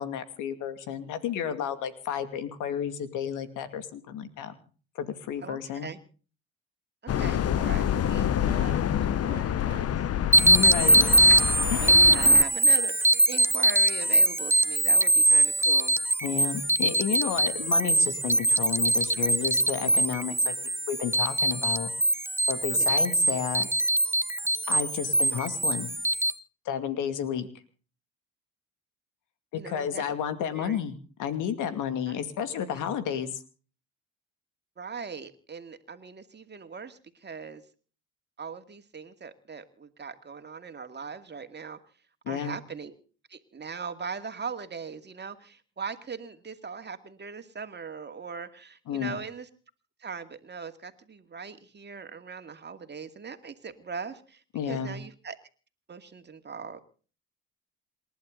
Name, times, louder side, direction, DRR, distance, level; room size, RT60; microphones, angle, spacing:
voice 1, 0.0-4.5 5.0-5.9 10.4-11.0 11.8-12.0 16.2-21.9 22.5-23.7 24.7-25.9 26.7-27.5 29.7-30.9 31.2-33.3 42.3-42.6 48.9-49.2 54.5-54.9, left 8 dB, 70° left, 10 dB, 2.5 m, -31 dB
voice 2, 5.4-6.0 7.1-9.9 10.6-11.4 11.8-16.0 22.7-23.1 29.5-30.0 30.5-30.8 32.1-32.2 34.8-37.6 38.4-41.8 42.3-43.0 43.3-49.5 50.0-55.4 55.9-56.8, right 5 dB, 35° right, 8 dB, 2.3 m, -40 dB
sound 1, 7.1-12.4, left 10 dB, 50° left, 1.1 m, -27 dB
sound 2, 10.3-26.3, right 1 dB, 10° right, 0.9 m, -22 dB
27.5 x 11.5 x 3.9 m, 0.40 s
supercardioid pair, 65°, 31 cm